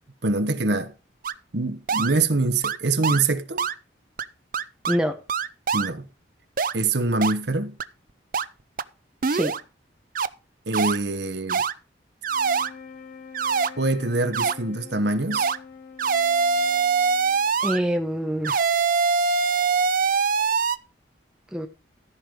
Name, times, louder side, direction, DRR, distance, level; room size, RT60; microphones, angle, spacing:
voice 1, 0.2-0.9 1.5-3.6 5.7-6.1 6.7-7.8 10.7-11.6 13.8-15.5, right 3 dB, 60° right, 1.1 m, -24 dB
sound 1, 1.2-1.3 1.9-2.1 2.6-2.8 3.0-3.2 3.6-3.7 4.2-4.3 4.5-5.0 5.3-5.9 6.6-6.7 7.2-7.3 7.8-7.9 8.3-8.4 8.8-8.9 9.2-9.6 10.1-10.3 10.7-11.0 11.5-11.7 12.2-12.7 13.3-13.7 14.3-14.5 15.3-15.6 16.0-17.8 18.4-20.8, right 5 dB, 45° right, 0.5 m, -23 dB
voice 2, 4.9-5.2 9.3-9.6 17.6-18.7 21.5-21.7, equal, 5° right, 0.9 m, -25 dB
sound 2, 12.3-17.7, left 5 dB, 50° left, 3.4 m, -45 dB
13.5 x 5.4 x 5.2 m
head